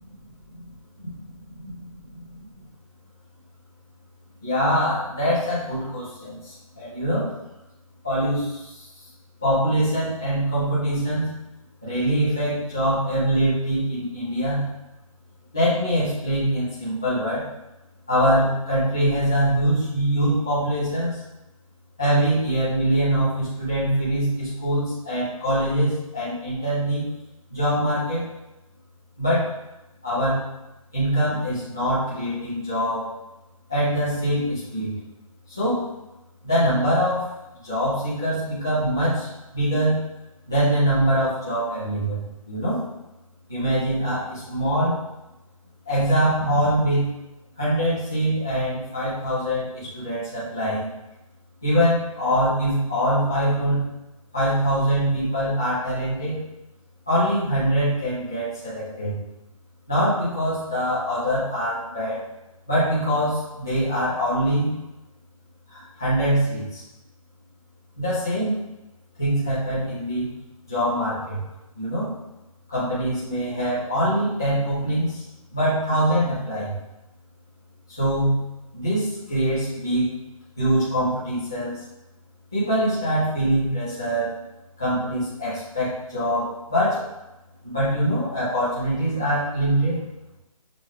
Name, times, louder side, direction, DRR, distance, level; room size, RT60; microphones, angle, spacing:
voice 1, 4.4-7.3 8.0-8.9 9.4-11.3 11.8-14.6 15.5-17.5 18.1-21.2 22.0-27.0 27.5-28.2 29.2-29.4 30.0-30.4 30.9-33.0 33.7-34.9 35.5-35.8 36.4-37.3 37.5-40.0 40.5-42.8 43.5-45.0 45.9-47.0 47.6-50.9 51.6-53.8 54.3-56.4 57.1-59.2 59.9-62.2 62.7-64.7 65.7-66.8 68.0-68.6 69.2-70.3 70.7-71.4 71.7-72.1 72.7-75.2 75.5-76.7 77.9-78.4 78.7-80.1 80.6-81.8 82.5-84.3 84.8-87.0 87.6-90.0, equal, 5° left, -12 dB, 0.3 m, -23 dB
6.3 x 2.4 x 3.3 m, 0.97 s
hypercardioid pair, 170°, 18 cm